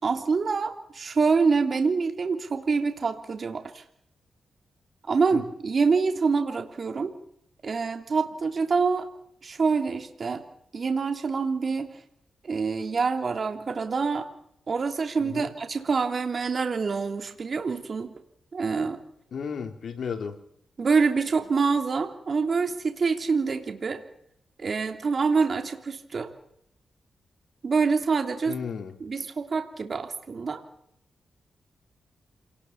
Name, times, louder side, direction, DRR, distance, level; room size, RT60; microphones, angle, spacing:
voice 1, 0.0-3.8 5.1-7.1 7.6-9.1 9.4-10.4 10.7-11.9 12.4-14.3 14.7-18.1 18.5-19.0 20.8-24.0 24.6-26.3 27.6-28.6 29.0-30.6, right 4 dB, 50° right, 7 dB, 3.1 m, -26 dB
voice 2, 19.3-20.4 28.5-28.9, left 6 dB, 70° left, 7 dB, 3.2 m, -33 dB
27.5 x 19.5 x 7.3 m, 0.68 s
cardioid pair, 90°, 0 cm